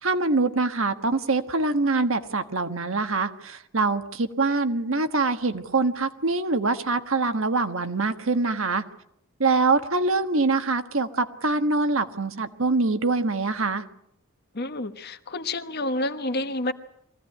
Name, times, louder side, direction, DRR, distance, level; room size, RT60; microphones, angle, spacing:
voice 1, 0.0-8.8 9.4-13.8, right 3 dB, 70° right, 9 dB, 1.5 m, -24 dB
voice 2, 14.5-16.7, left 2 dB, 50° left, 9 dB, 1.3 m, -29 dB
23.5 x 16.5 x 9.9 m, 0.78 s
head